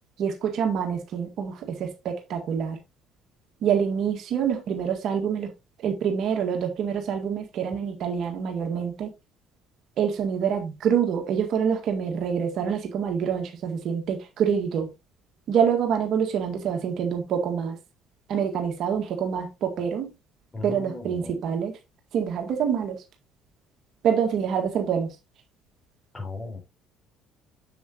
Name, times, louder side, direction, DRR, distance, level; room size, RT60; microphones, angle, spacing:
voice 1, 0.2-2.8 3.6-5.5 5.8-9.1 10.0-14.9 15.5-17.8 18.3-20.1 20.6-21.7 22.1-23.0 24.0-25.2, right 7 dB, 60° right, 1.8 m, -26 dB
voice 2, 20.5-21.4 26.1-26.6, left 3 dB, 25° left, 4.5 m, -37 dB
7.4 x 7.1 x 2.9 m
supercardioid pair, 70°, 0 cm